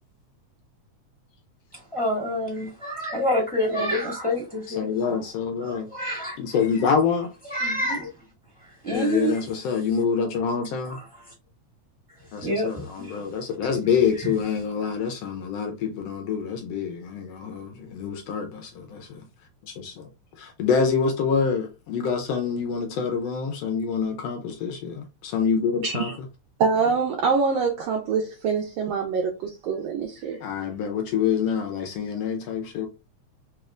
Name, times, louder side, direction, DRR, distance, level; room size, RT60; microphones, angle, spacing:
voice 1, 1.7-5.2 5.6-6.4 7.4-8.1 8.6-9.4 10.9-11.3 12.4-13.2 14.1-14.3, equal, 5° left, 1.6 m, -28 dB
voice 2, 4.8-5.9 6.4-7.3 8.9-11.0 12.3-19.1 19.7-20.1 20.4-26.1 30.4-32.9, left 6 dB, 75° left, 1.4 m, -26 dB
voice 3, 25.8-26.2 26.6-30.4, right 5 dB, 75° right, 1.6 m, -25 dB
4.2 x 3.3 x 2.4 m
omnidirectional pair, 3.3 m